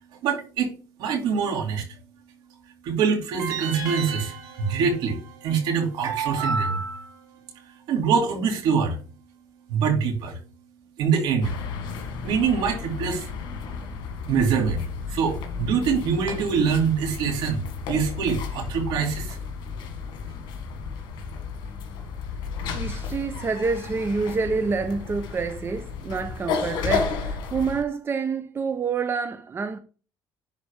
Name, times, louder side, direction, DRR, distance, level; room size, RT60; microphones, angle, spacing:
voice 1, 0.2-0.7 1.0-1.9 2.8-7.2 7.9-9.0 9.7-10.4 11.0-11.5 12.2-13.3 14.3-19.4, right 6 dB, 80° right, 2.5 m, -24 dB
sound 1, 3.4-6.5, right 6 dB, 65° right, 3.0 m, -36 dB
sound 2, 11.4-27.8, left 5 dB, 75° left, 1.7 m, -33 dB
voice 2, 22.7-29.8, right 4 dB, 30° right, 0.7 m, -27 dB
10.5 x 4.2 x 3.5 m
cardioid pair, 115°, 8 cm